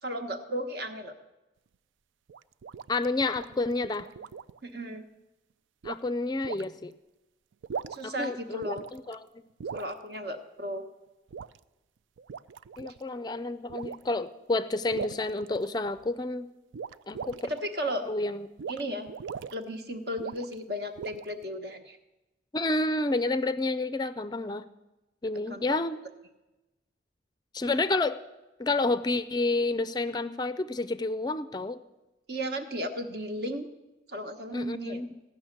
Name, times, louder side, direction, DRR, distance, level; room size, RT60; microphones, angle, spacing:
voice 1, 0.0-1.1 4.6-5.0 7.9-8.8 9.7-10.8 17.4-18.1 18.7-19.1 19.5-22.0 25.5-25.8 32.3-33.7 34.1-35.0, equal, 60° right, 7 dB, 1.2 m, -35 dB
sound 1, 2.3-4.6 5.8-6.1 6.4-6.6 7.5-8.2 8.6-9.2 9.6-9.9 11.3-11.6 12.2-13.0 13.7-14.1 14.9-16.1 16.7-17.6 18.6-18.8 19.1-19.5 20.2-20.6 21.0-21.4, right 6 dB, 90° right, 0.4 m, -39 dB
voice 2, 2.9-4.1 5.8-6.9 8.0-9.3 12.8-16.5 17.1-17.5 18.1-18.5 22.5-24.7 25.2-26.0 27.5-28.2 28.6-31.8 34.5-35.2, left 2 dB, 20° left, 13 dB, 0.4 m, -29 dB
16.0 x 6.4 x 9.8 m, 1.0 s
head